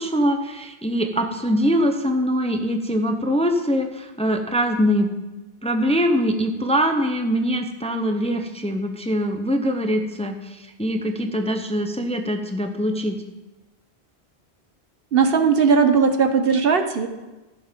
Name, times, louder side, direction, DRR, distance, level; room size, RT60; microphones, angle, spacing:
voice 1, 0.0-5.1 5.6-13.2, equal, 5° left, 5 dB, 0.7 m, -23 dB
voice 2, 15.1-17.1, right 5 dB, 60° right, 7 dB, 1.1 m, -18 dB
14.5 x 7.0 x 5.2 m, 1.1 s
omnidirectional pair, 1.1 m